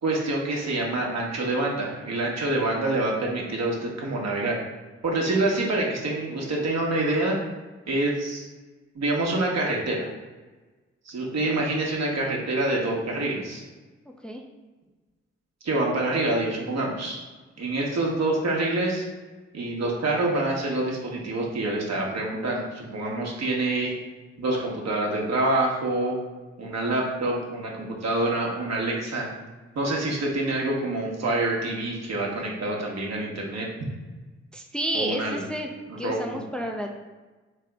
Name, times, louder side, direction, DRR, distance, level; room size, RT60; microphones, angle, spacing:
voice 1, 0.0-4.6 5.0-7.3 7.9-8.5 8.9-10.1 11.0-13.6 15.6-17.2 17.6-19.0 19.5-23.9 24.4-26.2 26.6-29.3 29.7-33.7 34.9-35.4 35.9-36.4, right 2 dB, 60° right, -2 dB, 1.2 m, -26 dB
voice 2, 34.5-37.0, equal, 5° left, 2 dB, 0.5 m, -31 dB
3.7 x 3.3 x 3.4 m, 1.2 s
supercardioid pair, 40°, 30 cm